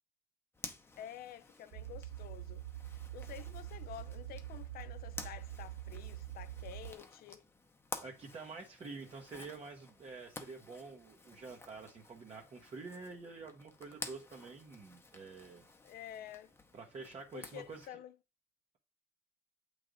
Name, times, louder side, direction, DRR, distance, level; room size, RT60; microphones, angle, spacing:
Zipper (clothing), 0.5-17.9, left 2 dB, 15° left, 0.8 m, -52 dB
voice 1, 1.0-7.4 15.8-16.5 17.3-18.1, left 11 dB, 65° left, 0.5 m, -50 dB
sound 1, 1.7-6.9, right 13 dB, 85° right, 0.4 m, -45 dB
voice 2, 8.0-15.6 16.7-18.0, right 4 dB, 35° right, 0.9 m, -48 dB
7.6 x 3.2 x 3.8 m
cardioid pair, 110°, 17 cm